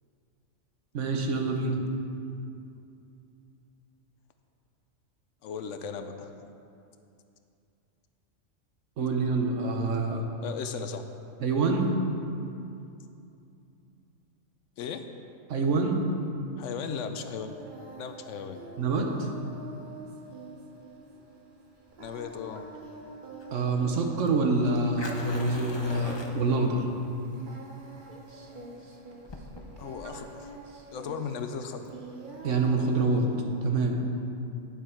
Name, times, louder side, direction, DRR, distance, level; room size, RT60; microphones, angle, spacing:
voice 1, 0.9-1.8 9.0-10.2 11.4-11.9 15.5-16.0 18.8-19.3 23.5-26.8 32.4-33.3 33.6-34.1, right 3 dB, 65° right, 2 dB, 1.2 m, -26 dB
voice 2, 5.4-6.3 10.4-11.0 14.8-15.1 16.6-17.5 17.9-18.6 22.0-22.7 29.8-30.5 30.9-31.9, left 6 dB, 70° left, 8 dB, 0.9 m, -36 dB
Singing, 16.8-33.4, right 2 dB, 45° right, 0.9 m, -46 dB
Fire, 21.9-32.9, left 2 dB, 30° left, 0.5 m, -46 dB
9.4 x 7.1 x 4.4 m, 2.6 s
omnidirectional pair, 1.4 m